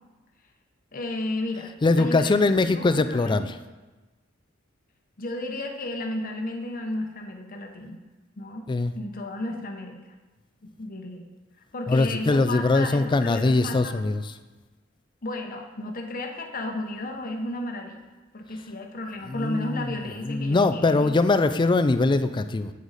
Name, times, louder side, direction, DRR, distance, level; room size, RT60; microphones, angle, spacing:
voice 1, 0.9-1.7 2.0-3.4 5.2-8.0 8.4-8.6 8.9-10.0 10.8-11.3 11.7-14.0 15.2-18.0 18.3-21.1, left 2 dB, 45° left, 3 dB, 0.9 m, -33 dB
voice 2, 1.8-3.6 8.7-8.9 11.9-14.3 19.2-22.7, left 3 dB, 25° left, 11 dB, 0.4 m, -22 dB
8.0 x 8.0 x 4.1 m, 1.2 s
head